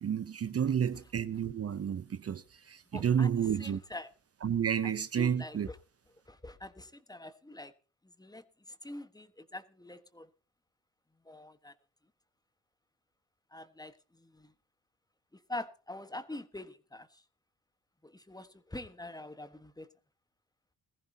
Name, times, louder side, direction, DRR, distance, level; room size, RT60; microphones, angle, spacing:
voice 1, 0.0-3.8 4.4-5.7, right 8 dB, 45° right, 0.8 m, -31 dB
voice 2, 2.9-3.3 3.6-4.1 4.8-5.8 6.3-7.7 8.2-10.3 11.2-11.7 13.5-14.5 15.3-17.2 18.0-19.9, left 1 dB, 10° left, 1.3 m, -45 dB
20.0 x 14.5 x 2.8 m
cardioid pair, 80°, 35 cm